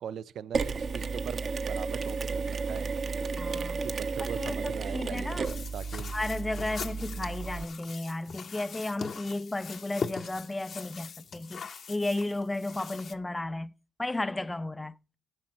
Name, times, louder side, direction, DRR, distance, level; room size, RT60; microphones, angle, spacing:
voice 1, 0.0-2.9 3.8-6.1, right 9 dB, 70° right, 0.5 m, -41 dB
Mechanisms, 0.5-7.7, right 4 dB, 45° right, 0.9 m, -33 dB
voice 2, 3.4-3.9 4.4-5.5 6.1-11.6 11.9-13.7 14.0-14.9, left 2 dB, 15° left, 0.4 m, -33 dB
sound 1, 5.4-13.1, left 6 dB, 50° left, 0.8 m, -41 dB
14.0 x 6.1 x 4.4 m
cardioid pair, 90°, 0 cm